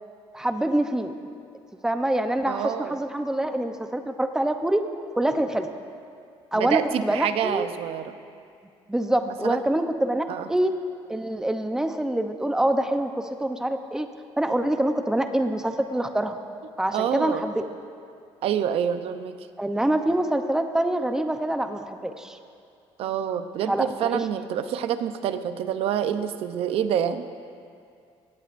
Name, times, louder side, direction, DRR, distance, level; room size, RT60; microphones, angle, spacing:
voice 1, 0.3-1.1 1.8-4.8 5.1-5.7 6.5-7.7 8.9-10.7 11.1-14.1 14.4-16.4 16.8-17.6 19.6-22.4 23.7-24.2, right 1 dB, 5° right, 6 dB, 0.7 m, -25 dB
voice 2, 2.5-3.0 6.5-8.2 9.3-9.6 10.3-10.5 16.9-17.4 18.4-19.4 23.0-27.2, right 9 dB, 65° right, 10 dB, 0.7 m, -27 dB
21.5 x 17.0 x 2.6 m, 2.3 s
cardioid pair, 150°, 11 cm